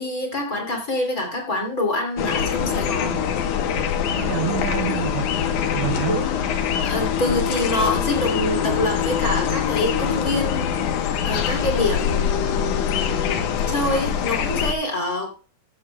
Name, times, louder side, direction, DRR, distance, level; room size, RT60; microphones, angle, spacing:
voice 1, 0.0-3.2 6.0-6.4 6.8-10.7 11.2-15.3, left 1 dB, 30° left, 2 dB, 3.0 m, -26 dB
sound 1, 2.2-14.7, left 8 dB, 80° left, 2.5 m, -24 dB
voice 2, 4.1-6.2, right 11 dB, 80° right, 6 dB, 1.3 m, -28 dB
14.5 x 13.5 x 2.3 m, 0.37 s
omnidirectional pair, 3.5 m